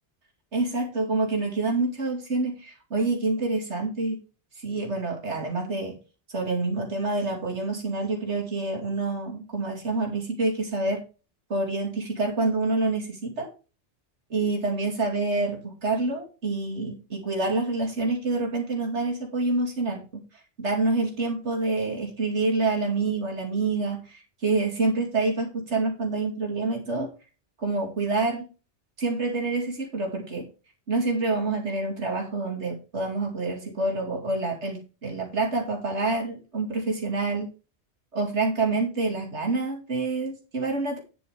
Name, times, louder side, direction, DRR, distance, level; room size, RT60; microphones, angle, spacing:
voice 1, 0.5-4.2 4.6-6.0 6.3-11.0 11.5-13.5 14.3-27.1 27.6-28.4 29.0-30.5 30.9-37.5 38.1-41.0, right 3 dB, 90° right, 0 dB, 2.8 m, -27 dB
9.8 x 8.5 x 3.4 m, 0.32 s
omnidirectional pair, 1.1 m